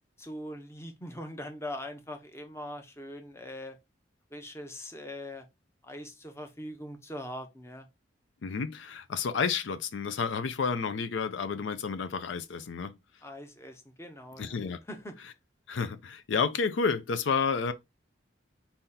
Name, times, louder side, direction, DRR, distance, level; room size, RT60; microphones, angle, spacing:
voice 1, 0.2-3.8 4.3-5.4 5.8-7.9 13.2-14.6 14.9-15.2, left 1 dB, 15° left, 0.7 m, -41 dB
voice 2, 8.4-13.0 14.4-14.8 15.7-17.7, left 5 dB, 70° left, 0.4 m, -30 dB
4.3 x 2.8 x 3.7 m
head